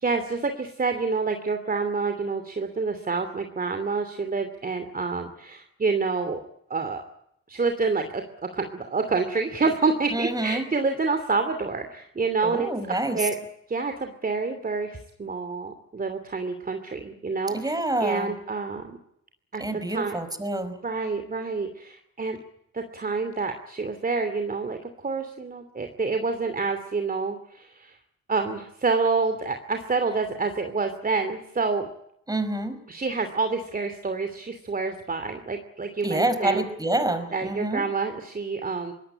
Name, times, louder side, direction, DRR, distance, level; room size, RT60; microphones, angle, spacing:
voice 1, 0.0-6.4 6.7-7.0 7.5-8.2 8.5-13.3 13.7-19.0 19.5-19.6 19.9-20.2 20.8-22.4 22.7-28.0 28.3-31.9 32.9-36.6 37.3-38.9, right 4 dB, 30° right, 7 dB, 2.7 m, -28 dB
voice 2, 10.1-10.6 12.4-13.2 17.5-18.3 19.6-20.7 32.3-32.8 36.0-37.8, right 2 dB, 10° right, 11 dB, 4.8 m, -27 dB
23.5 x 18.5 x 9.9 m, 0.77 s
cardioid pair, 90°, 30 cm